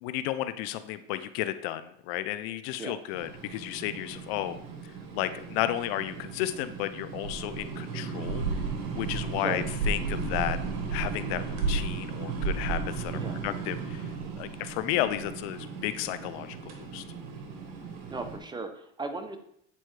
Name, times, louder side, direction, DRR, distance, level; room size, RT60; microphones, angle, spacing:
voice 1, 0.0-4.6 5.1-8.4 8.9-10.6 10.9-14.1 14.4-17.0, left 13 dB, 70° left, 12 dB, 0.5 m, -33 dB
sound 1, 3.1-18.4, right 4 dB, 65° right, 1.5 m, -34 dB
voice 2, 18.1-19.4, right 3 dB, 15° right, 8 dB, 0.6 m, -36 dB
8.4 x 4.3 x 3.2 m, 0.71 s
supercardioid pair, 110°, 31 cm